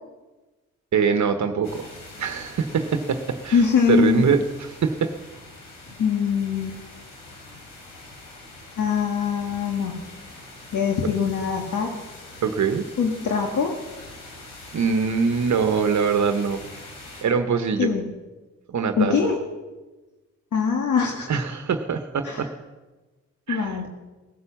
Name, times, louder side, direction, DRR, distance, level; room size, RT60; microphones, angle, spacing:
voice 1, 0.9-1.9 2.2-3.6 3.9-5.1 12.4-12.9 14.7-16.6 17.2-17.9 18.7-19.3 21.3-22.5 23.5-23.8, right 6 dB, 60° right, 7 dB, 1.2 m, -23 dB
sound 1, 1.6-17.2, left 2 dB, 85° left, 3.6 m, -44 dB
voice 2, 3.5-4.3 6.0-6.8 8.8-10.0 10.7-11.9 13.0-13.8 17.8-18.1 19.0-19.4 20.5-21.4 22.2-22.5 23.5-23.9, left 6 dB, 70° left, 2 dB, 1.8 m, -23 dB
18.0 x 9.8 x 7.2 m, 1.2 s
supercardioid pair, 50°, 32 cm